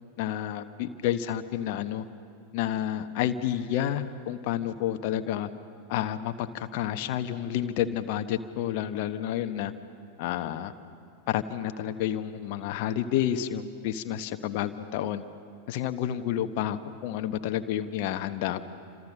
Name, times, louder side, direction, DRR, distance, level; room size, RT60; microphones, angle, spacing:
voice 1, 0.2-2.0 2.5-5.5 5.9-9.7 10.2-10.7 11.3-15.2 15.7-18.6, left 11 dB, 45° left, 9 dB, 1.2 m, -30 dB
28.0 x 26.5 x 6.4 m, 2.5 s
figure-of-eight pair, 90°, 0 cm